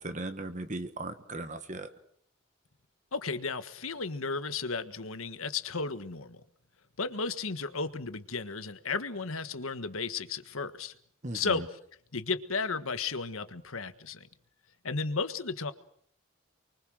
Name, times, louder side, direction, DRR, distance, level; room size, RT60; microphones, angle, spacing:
voice 1, 0.0-1.9 11.2-11.7, right 2 dB, 35° right, 8 dB, 1.4 m, -37 dB
voice 2, 3.1-6.4 7.0-10.9 11.3-11.7 12.1-14.3 14.8-15.7, left 4 dB, 85° left, 11 dB, 1.6 m, -34 dB
29.5 x 24.0 x 6.4 m, 0.63 s
head